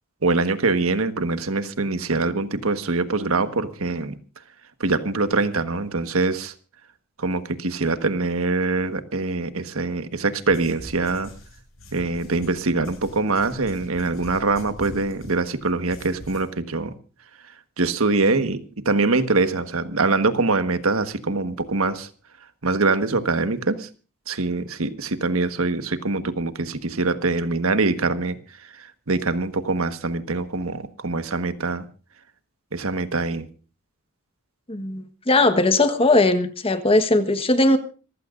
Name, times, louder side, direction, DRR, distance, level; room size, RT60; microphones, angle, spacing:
voice 1, 0.2-4.1 4.8-6.5 7.2-11.3 11.9-16.9 17.8-22.1 22.6-23.9 24.3-28.4 28.8-31.8 32.7-33.5, right 3 dB, 90° right, 1.4 m, -24 dB
sound 1, 10.4-16.4, equal, 75° left, 7.3 m, -43 dB
voice 2, 34.7-37.8, left 2 dB, 25° left, 1.3 m, -19 dB
26.5 x 15.5 x 2.6 m
head